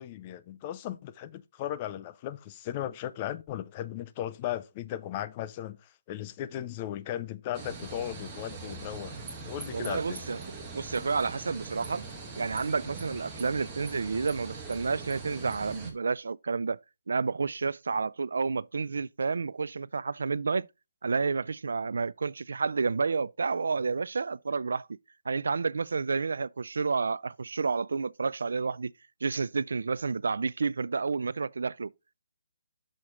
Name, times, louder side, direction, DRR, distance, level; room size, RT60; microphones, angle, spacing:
voice 1, 0.0-9.1 9.4-10.2, left 12 dB, 20° left, 0.3 m, -36 dB
sound 1, 7.5-15.9, right 3 dB, 10° right, 1.3 m, -42 dB
voice 2, 9.7-12.0 12.4-16.8 17.1-20.7 21.0-24.9 25.3-28.9 29.2-31.9, right 4 dB, 75° right, 0.3 m, -30 dB
6.4 x 4.3 x 4.9 m
hypercardioid pair, 175°, 0 cm